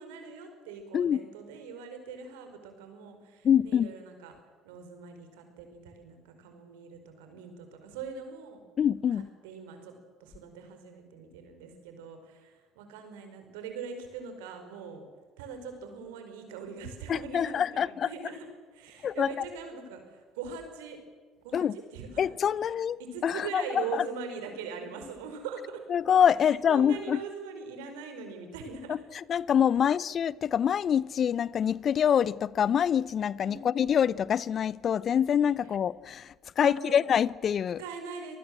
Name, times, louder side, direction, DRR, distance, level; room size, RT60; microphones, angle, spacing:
voice 1, 0.0-4.3 4.6-8.6 9.4-9.9 10.2-15.0 15.4-18.5 18.7-21.0 21.4-22.2 23.0-25.8 26.7-29.0 33.4-33.7 36.6-37.0 37.8-38.4, right 5 dB, 75° right, 5.0 m, -41 dB
voice 2, 3.4-3.9 8.8-9.3 17.1-18.1 19.0-19.3 21.5-21.8 22.2-24.0 25.9-27.2 28.9-37.8, left 8 dB, 45° left, 0.6 m, -26 dB
26.5 x 19.5 x 7.6 m
hypercardioid pair, 60°, 0 cm